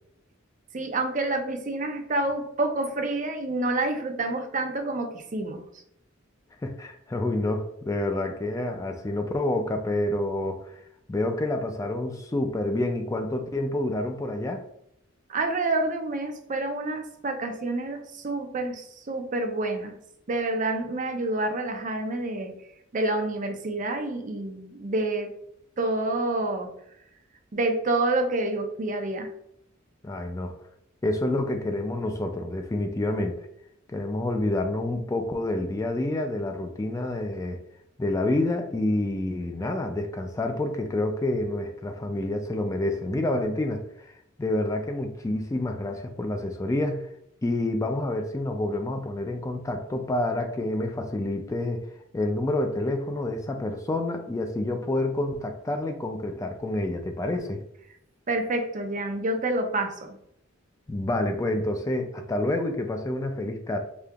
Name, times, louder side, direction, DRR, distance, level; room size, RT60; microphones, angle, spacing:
voice 1, 0.7-5.6 15.3-19.9 20.3-22.5 22.9-25.3 25.8-26.7 27.5-29.3 58.3-60.2, right 2 dB, 40° right, 5 dB, 0.5 m, -28 dB
voice 2, 6.6-10.8 11.1-14.6 30.0-30.5 31.0-33.5 33.9-37.6 38.0-47.1 47.4-51.9 52.1-57.6 60.9-63.8, left 1 dB, 15° left, 5 dB, 0.3 m, -28 dB
5.0 x 2.7 x 2.3 m, 0.75 s
head